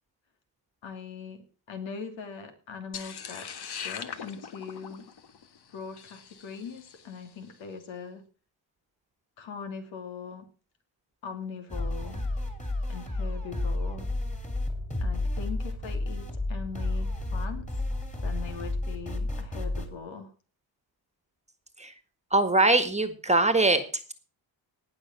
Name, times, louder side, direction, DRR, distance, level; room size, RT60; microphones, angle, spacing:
voice 1, 0.8-5.1 5.7-8.2 9.4-10.5 11.2-12.2 12.9-14.1 15.0-17.7 18.2-20.3, left 6 dB, 75° left, 6 dB, 2.9 m, -41 dB
sound 1, 2.9-7.2, left 7 dB, 55° left, 1.6 m, -41 dB
sound 2, 11.7-19.9, left 2 dB, 15° left, 3.2 m, -31 dB
voice 2, 22.3-24.1, right 2 dB, 15° right, 10 dB, 1.7 m, -23 dB
18.5 x 6.6 x 6.0 m, 0.38 s
cardioid pair, 100°, 46 cm